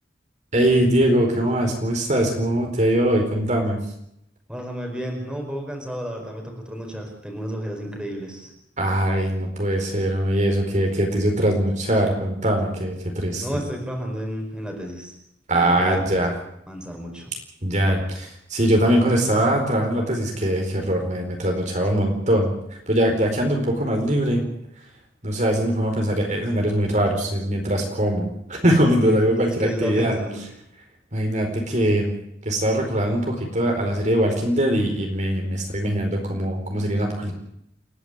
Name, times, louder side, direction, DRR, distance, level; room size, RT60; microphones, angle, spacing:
voice 1, 0.5-3.8 8.8-13.4 15.5-16.4 17.6-22.5 22.9-24.4 25.2-30.2 31.1-32.1 32.4-37.3, right 1 dB, 40° right, 2 dB, 4.4 m, -22 dB
voice 2, 4.5-8.5 13.4-15.1 15.5-16.1 16.7-17.3 29.0-29.1 29.4-30.4, equal, 5° right, 1 dB, 4.8 m, -31 dB
29.0 x 11.0 x 9.7 m, 0.78 s
head